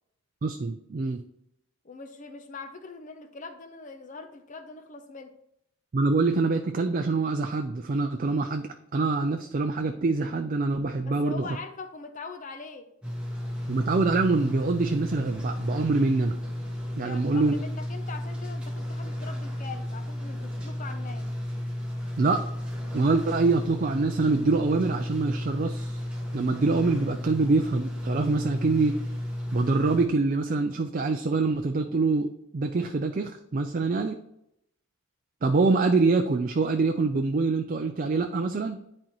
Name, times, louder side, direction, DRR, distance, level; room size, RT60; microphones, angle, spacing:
voice 1, 0.4-1.2 5.9-11.5 13.7-16.4 17.0-17.5 22.2-22.5 22.9-26.0 26.3-29.0 29.5-34.2 35.4-38.8, right 3 dB, 40° right, 5 dB, 0.4 m, -25 dB
voice 2, 1.8-5.3 11.1-12.9 16.9-21.3 33.8-33.9, left 4 dB, 35° left, 7 dB, 0.6 m, -42 dB
sound 1, 13.0-30.1, left 1 dB, 5° right, 1.2 m, -33 dB
10.5 x 4.3 x 3.0 m, 0.78 s
head